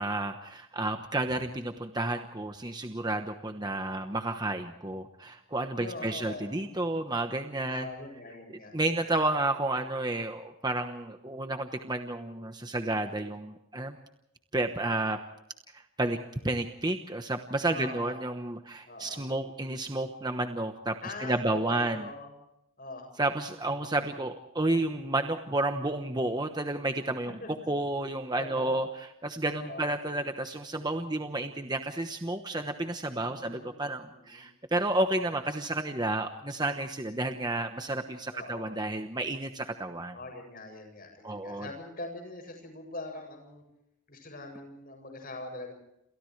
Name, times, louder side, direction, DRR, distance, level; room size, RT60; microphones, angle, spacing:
voice 1, 0.0-7.9 8.7-14.0 14.5-15.2 15.7-22.1 23.2-40.2 41.2-41.7, right 2 dB, 20° right, 6 dB, 1.0 m, -31 dB
voice 2, 5.8-6.6 7.6-8.7 17.7-18.2 18.9-19.2 21.0-22.3 22.8-23.1 27.2-27.7 28.3-28.7 29.5-29.9 33.3-33.7 34.1-34.4 38.3-38.8 40.1-43.6 44.1-45.7, left 2 dB, 40° left, 4 dB, 7.9 m, -42 dB
29.0 x 28.0 x 3.3 m, 0.81 s
head